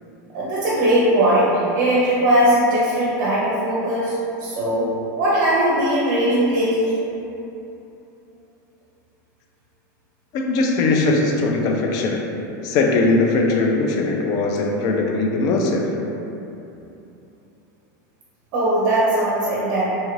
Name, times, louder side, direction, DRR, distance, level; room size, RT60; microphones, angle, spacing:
voice 1, 0.3-4.1 4.4-4.9 5.2-7.0 18.5-19.8, right 1 dB, 50° right, -7 dB, 0.6 m, -19 dB
voice 2, 10.3-12.2 12.6-15.9, left 3 dB, 40° left, 1 dB, 0.3 m, -20 dB
2.7 x 2.4 x 3.1 m, 2.9 s
supercardioid pair, 150°, 10 cm